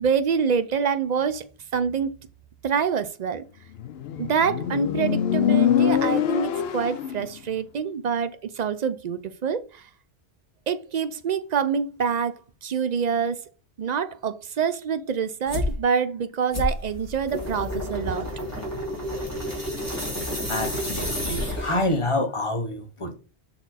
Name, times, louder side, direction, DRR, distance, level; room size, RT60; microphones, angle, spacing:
voice 1, 0.0-1.4 1.7-2.1 2.6-3.4 4.2-9.9 10.7-13.4 13.8-18.3, right 6 dB, 55° right, 0.5 m, -26 dB
Motorcycle, 3.8-7.3, left 9 dB, 70° left, 0.8 m, -24 dB
sound 1, 15.5-15.8 16.5-21.9, left 1 dB, 15° right, 2.4 m, -30 dB
voice 2, 20.5-23.2, left 1 dB, 30° left, 0.8 m, -27 dB
5.9 x 4.2 x 4.0 m
omnidirectional pair, 1.2 m